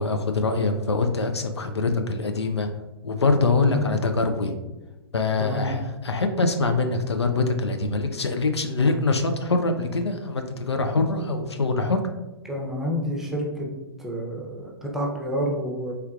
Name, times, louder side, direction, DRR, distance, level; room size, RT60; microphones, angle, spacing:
voice 1, 0.0-2.7 3.0-4.5 5.1-12.0, left 3 dB, 85° left, 6 dB, 0.5 m, -24 dB
voice 2, 5.4-5.7 12.4-13.7 14.0-15.9, equal, 5° right, -2 dB, 0.7 m, -29 dB
4.4 x 3.4 x 2.3 m, 1.1 s
figure-of-eight pair, 115°, 14 cm